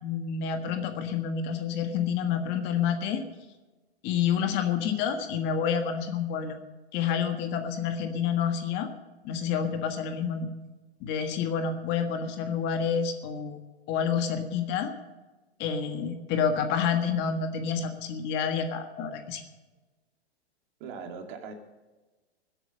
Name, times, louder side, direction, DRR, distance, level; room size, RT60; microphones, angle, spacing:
voice 1, 0.0-3.2 4.0-6.6 6.9-8.9 9.2-10.5 11.0-14.9 15.6-19.4, left 7 dB, 35° left, 6 dB, 1.6 m, -28 dB
voice 2, 20.8-21.5, right 5 dB, 45° right, 4 dB, 2.6 m, -40 dB
20.5 x 8.2 x 6.6 m, 1.2 s
hypercardioid pair, 135°, 32 cm